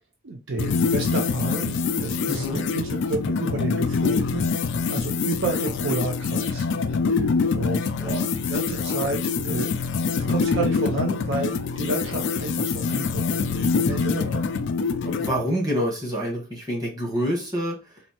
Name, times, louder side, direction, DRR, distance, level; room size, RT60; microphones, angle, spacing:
voice 1, 0.2-7.8 8.5-9.8 10.1-14.6, right 3 dB, 55° right, 2 dB, 0.5 m, -31 dB
sound 1, 0.6-15.4, left 4 dB, 55° left, 0.3 m, -25 dB
voice 2, 2.2-2.6 8.0-8.3 15.0-18.0, equal, 15° right, -1 dB, 1.2 m, -27 dB
4.2 x 2.6 x 2.9 m, 0.30 s
head